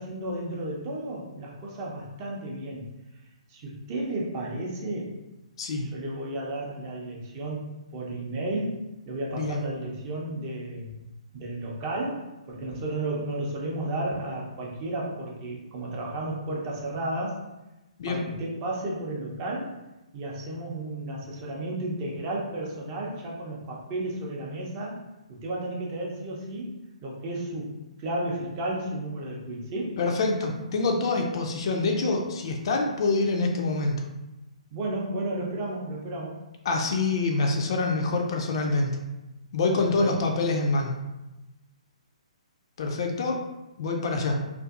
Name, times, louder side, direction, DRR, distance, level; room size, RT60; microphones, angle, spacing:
voice 1, 0.0-2.9 3.5-5.2 5.9-8.8 9.1-10.9 11.3-17.4 18.1-19.7 20.1-25.0 25.3-26.7 27.0-30.0 34.7-36.4 39.8-40.1, right 1 dB, 30° right, -3 dB, 0.6 m, -33 dB
voice 2, 30.0-34.0 36.7-38.9 39.5-40.9 42.8-43.4 43.8-44.4, left 3 dB, 45° left, 2 dB, 0.3 m, -26 dB
2.5 x 2.5 x 2.4 m, 1.0 s
figure-of-eight pair, 130°, 4 cm